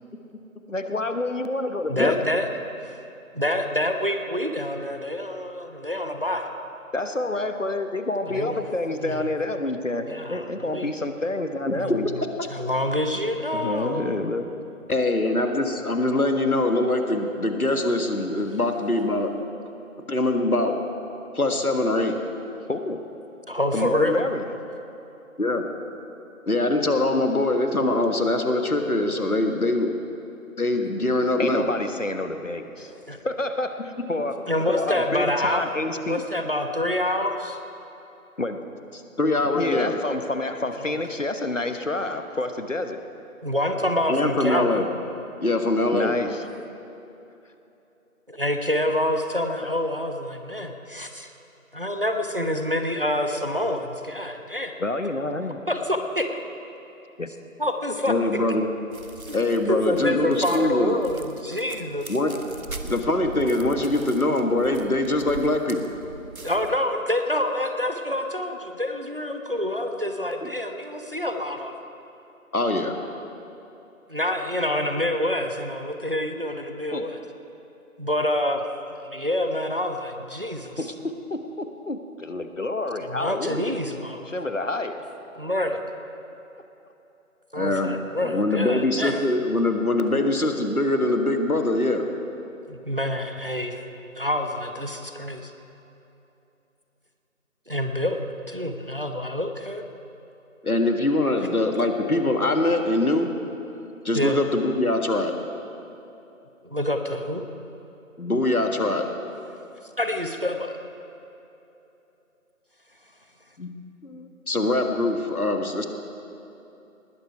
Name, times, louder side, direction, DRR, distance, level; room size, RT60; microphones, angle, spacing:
voice 1, 0.7-2.2 6.9-12.1 13.5-14.6 22.7-23.0 23.7-24.4 31.4-32.9 33.2-34.4 34.7-36.2 38.4-38.6 39.5-43.0 45.9-46.4 54.8-55.6 57.2-57.3 76.9-77.1 80.8-83.8 84.3-85.0, left 2 dB, 60° left, 8 dB, 1.1 m, -28 dB
voice 2, 1.9-2.5 2.8-3.0 3.3-6.5 8.3-8.6 9.0-9.3 10.1-10.9 11.7-12.2 12.5-14.2 23.5-24.2 33.1-33.2 34.5-35.7 36.0-37.6 40.8-40.9 43.4-44.8 48.3-51.3 51.7-54.7 55.7-55.8 56.2-56.3 57.6-58.2 59.3-59.4 59.7-62.1 66.4-71.7 74.1-77.2 78.0-78.6 79.0-80.8 83.0-84.3 85.4-85.8 87.5-89.2 92.7-93.8 94.2-95.5 97.7-98.2 98.5-99.8 104.1-104.4 106.6-107.4 110.0-110.8, left 1 dB, 40° right, 5 dB, 0.9 m, -27 dB
voice 3, 14.9-19.3 20.1-20.8 21.3-22.2 25.4-25.7 26.5-29.9 30.6-31.6 39.2-40.0 44.1-44.9 45.4-46.1 58.1-58.7 59.3-61.0 62.1-62.4 62.8-65.8 70.4-70.5 72.5-73.0 87.5-92.1 100.6-103.3 104.0-105.3 108.2-109.1 113.6-113.7 114.0-115.9, left 2 dB, 85° left, 5 dB, 1.7 m, -23 dB
sound 1, 58.9-66.8, right 2 dB, 75° right, 1.2 m, -41 dB
19.5 x 11.5 x 4.7 m, 2.9 s
figure-of-eight pair, 175°, 43 cm